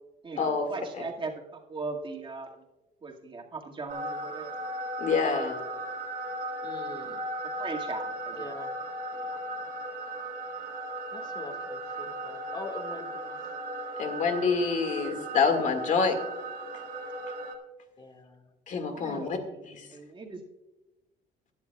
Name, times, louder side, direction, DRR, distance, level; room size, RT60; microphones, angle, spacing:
voice 1, 0.2-2.6 3.0-4.6 7.6-8.6 9.1-9.4 18.9-19.6 19.9-20.4, right 3 dB, 30° right, 1 dB, 2.0 m, -39 dB
sound 1, 3.9-17.5, right 1 dB, 55° right, 1.9 m, -36 dB
voice 2, 5.0-5.6 14.0-16.2 18.7-19.4 19.8-19.9, left 5 dB, 50° left, 6 dB, 2.0 m, -26 dB
voice 3, 6.6-7.2 8.3-8.7 11.1-13.4 18.0-18.5 19.0-19.8, left 2 dB, 25° left, 5 dB, 1.9 m, -44 dB
16.5 x 11.0 x 2.3 m, 1.0 s
cardioid pair, 110°, 17 cm